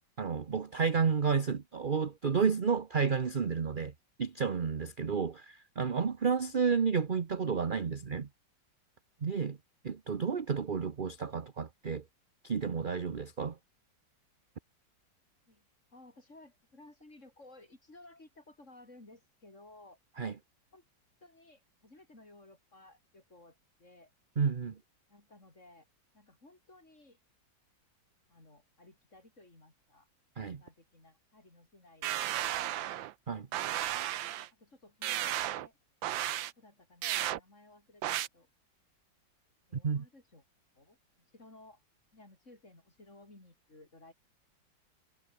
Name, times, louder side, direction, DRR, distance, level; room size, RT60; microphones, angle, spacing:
voice 1, 0.2-8.3 9.2-9.6 9.8-12.0 12.4-13.6 20.2-20.3 24.4-24.8 30.4-30.6 33.3-33.5 39.7-40.1, right 6 dB, 35° right, 0.9 m, -31 dB
voice 2, 15.9-20.0 20.7-20.8 21.2-24.1 25.1-25.9 26.1-27.2 28.3-30.1 30.6-32.5 32.8-33.1 34.5-35.8 36.6-38.5 39.7-40.4 40.8-41.0 41.3-41.8 42.1-44.1, left 2 dB, 35° left, 6.4 m, -57 dB
sound 1, 32.0-33.1 33.5-34.5 35.0-35.7 36.0-36.5 37.0-37.4 38.0-38.3, right 13 dB, 85° right, 1.6 m, -33 dB
omnidirectional pair, 2.1 m